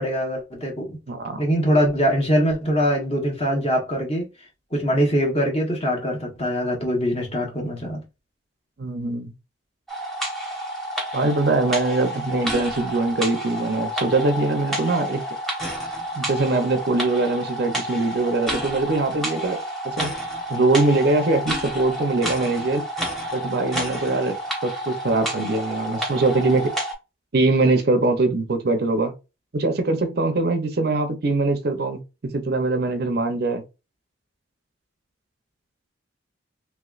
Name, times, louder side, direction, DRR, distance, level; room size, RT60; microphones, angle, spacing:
voice 1, 0.0-1.0 1.4-4.3 4.7-8.0, equal, 30° left, 1.2 m, -23 dB
voice 2, 1.1-1.4 8.8-9.3 11.1-15.2 16.1-19.6 19.8-20.1 20.5-22.8 23.3-24.4 24.6-26.7 27.3-29.1 29.5-33.6, right 2 dB, 50° right, 0.6 m, -22 dB
sound 1, 9.9-26.9, equal, ahead, 1.0 m, -30 dB
3.1 x 3.1 x 2.4 m
head